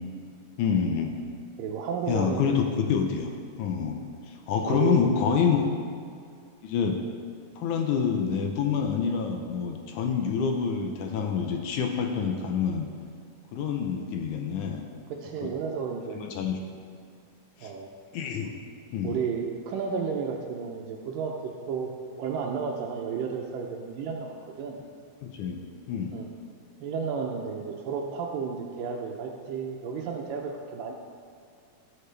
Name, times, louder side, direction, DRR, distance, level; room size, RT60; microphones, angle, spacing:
voice 1, 0.6-1.1 2.1-4.0 4.3-5.6 6.6-7.0 7.6-12.9 13.5-14.8 15.4-15.5 16.2-16.6 17.6-17.7 18.1-18.5 18.9-19.2 24.8-24.9 25.2-25.6 25.9-26.2, left 6 dB, 75° left, 3 dB, 2.1 m, -27 dB
voice 2, 1.6-2.7 4.7-5.0 15.1-16.2 17.6-17.9 19.0-21.9 22.2-24.8 26.1-26.3 26.8-30.9, right 6 dB, 85° right, 1 dB, 2.4 m, -32 dB
18.0 x 6.6 x 3.3 m, 2.3 s
omnidirectional pair, 3.8 m